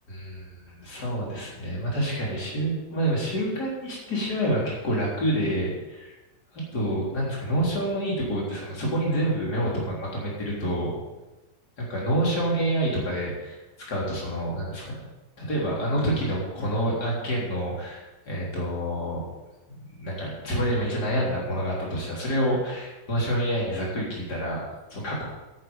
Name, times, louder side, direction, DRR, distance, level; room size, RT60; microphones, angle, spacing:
voice 1, 0.1-6.1 6.5-10.9 11.8-13.6 13.9-15.0 15.4-19.2 19.9-24.6 24.9-25.2, right 1 dB, 70° left, -5 dB, 4.4 m, -27 dB
10.0 x 9.4 x 8.7 m, 1.1 s
omnidirectional pair, 1.8 m